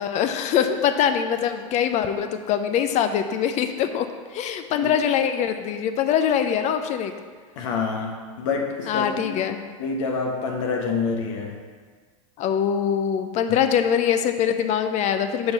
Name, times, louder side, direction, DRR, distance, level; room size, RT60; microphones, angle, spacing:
voice 1, 0.0-4.1 4.3-7.1 8.9-9.6 12.4-15.5, left 8 dB, 40° left, 8 dB, 0.6 m, -23 dB
voice 2, 7.6-9.4 9.8-11.6 13.5-13.6, left 4 dB, 65° left, 2 dB, 1.0 m, -27 dB
6.6 x 4.5 x 5.3 m, 1.5 s
hypercardioid pair, 90°, 18 cm